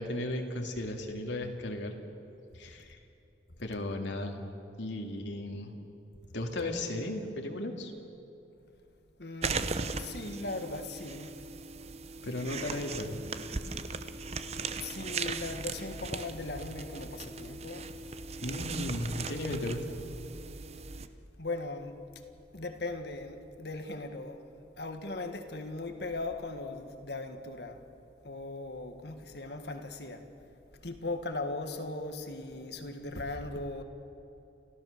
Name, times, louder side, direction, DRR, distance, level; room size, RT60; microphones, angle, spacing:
voice 1, 0.0-2.0 2.5-3.0 3.6-4.5 4.8-5.7 6.3-7.9 12.2-13.2 18.4-20.0, left 1 dB, 80° left, 2 dB, 2.4 m, -35 dB
voice 2, 9.2-11.4 14.8-17.9 21.4-22.0 22.5-27.8 28.2-30.3 30.8-33.8, left 2 dB, 65° left, 6 dB, 1.7 m, -38 dB
sound 1, 9.4-21.1, right 4 dB, 35° right, 0.7 m, -38 dB
30.0 x 14.0 x 6.7 m, 2.8 s
head